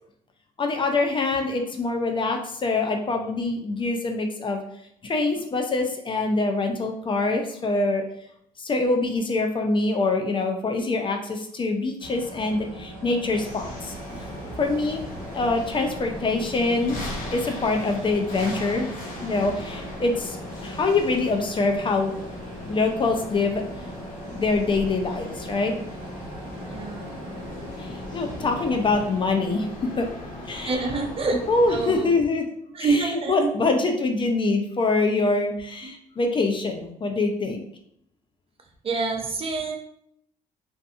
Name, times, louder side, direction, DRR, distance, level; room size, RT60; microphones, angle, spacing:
voice 1, 0.6-4.6 5.0-8.0 8.6-13.9 14.6-15.0 15.3-18.9 19.2-20.4 20.6-22.1 22.7-23.6 24.3-25.8 27.8-29.7 30.0-30.1 30.5-30.9 31.5-32.4 32.8-37.6, left 3 dB, 30° left, 3 dB, 0.4 m, -24 dB
sound 1, 12.0-29.1, equal, 75° right, 0.8 m, -41 dB
sound 2, 13.3-32.0, left 1 dB, 60° left, 0.8 m, -38 dB
voice 2, 26.7-27.1 30.7-31.4 31.7-32.1 32.7-33.3 35.8-35.9 38.8-39.7, right 3 dB, 40° right, 3 dB, 0.5 m, -26 dB
2.5 x 2.4 x 2.4 m, 0.71 s
supercardioid pair, 75°, 16 cm